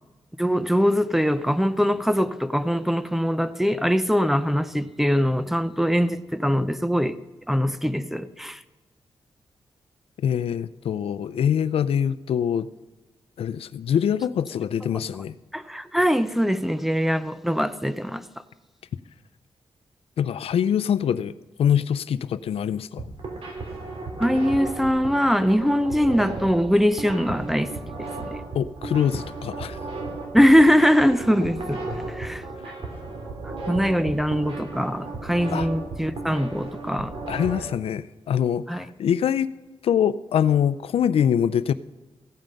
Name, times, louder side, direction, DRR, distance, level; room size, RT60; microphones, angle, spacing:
voice 1, 0.4-7.2 7.5-8.6 15.5-18.2 24.2-27.7 30.3-31.8 32.1-32.4 33.7-37.1 38.7-38.8, equal, 5° right, 0.5 m, -22 dB
voice 2, 10.2-12.7 13.4-15.4 20.2-21.3 21.6-23.0 28.5-29.8 35.5-35.7 37.3-39.5 39.8-41.7, left 8 dB, 85° left, 0.5 m, -24 dB
sound 1, 22.8-37.6, right 3 dB, 75° right, 2.9 m, -34 dB
15.5 x 9.0 x 5.3 m
wide cardioid pair, 120°, 10 cm